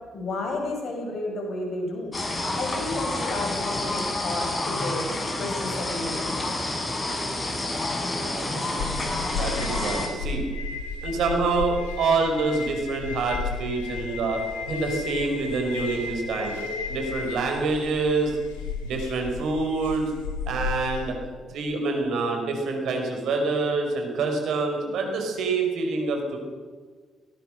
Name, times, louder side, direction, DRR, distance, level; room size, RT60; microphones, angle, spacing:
voice 1, 0.1-2.1 2.5-5.1 5.4-6.5, left 2 dB, 55° left, 2 dB, 7.8 m, -32 dB
sound 1, 2.1-10.1, left 2 dB, 30° left, 6.2 m, -29 dB
voice 2, 8.0-8.9 9.3-10.4 11.0-14.4 14.7-16.6 16.9-18.4 18.8-20.0 20.5-21.2 21.5-26.4, right 3 dB, 65° right, 3 dB, 5.3 m, -26 dB
sound 2, 8.7-21.0, left 4 dB, 85° left, 3.9 m, -34 dB
21.5 x 19.0 x 6.6 m, 1.5 s
hypercardioid pair, 45°, 0 cm